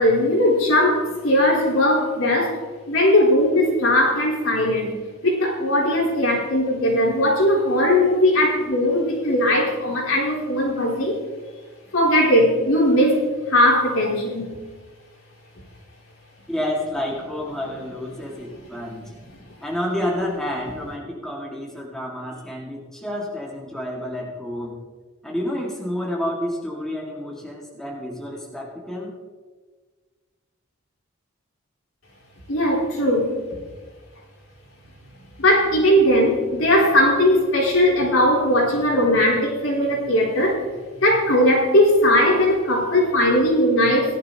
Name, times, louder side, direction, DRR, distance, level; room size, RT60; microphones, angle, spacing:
voice 1, 0.0-4.9 5.2-11.2 11.9-13.2 13.5-14.6 32.5-33.4 35.4-40.6 41.0-44.2, left 1 dB, 85° left, -4 dB, 4.1 m, -19 dB
voice 2, 16.5-19.1 19.6-24.8 25.2-29.1, left 1 dB, 5° left, -4 dB, 2.0 m, -29 dB
18.0 x 11.0 x 2.9 m, 1.4 s
head